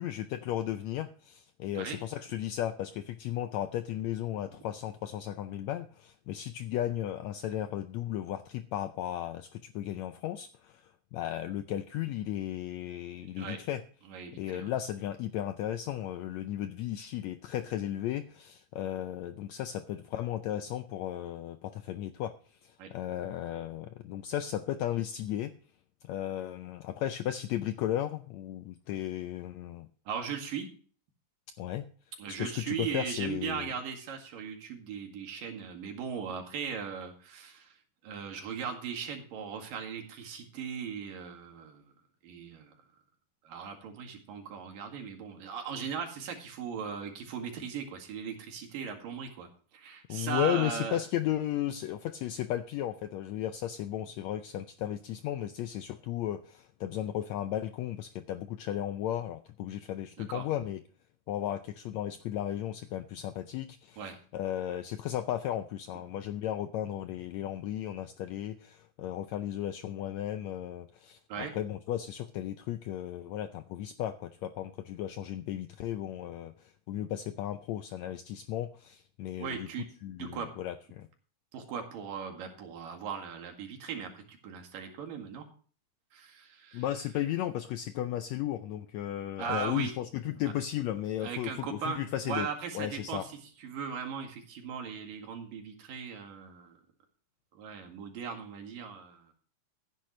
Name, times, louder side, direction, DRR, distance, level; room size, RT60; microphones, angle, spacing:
voice 1, 0.0-13.8 14.4-25.5 26.0-29.9 31.6-31.8 32.3-33.7 50.1-60.8 61.3-79.7 80.0-81.1 86.7-92.5 92.7-93.2, left 12 dB, 90° left, 10 dB, 1.5 m, -35 dB
voice 2, 13.2-13.6 14.1-14.7 22.8-22.9 30.1-30.7 32.2-37.8 38.0-41.9 42.2-42.7 43.4-51.0 60.2-60.5 64.0-64.2 71.3-71.5 79.4-79.9 80.2-80.5 81.5-85.5 86.1-86.8 89.4-89.9 91.2-96.8 97.6-99.3, right 7 dB, 85° right, 3 dB, 3.7 m, -38 dB
15.0 x 10.5 x 3.2 m, 0.42 s
omnidirectional pair, 3.8 m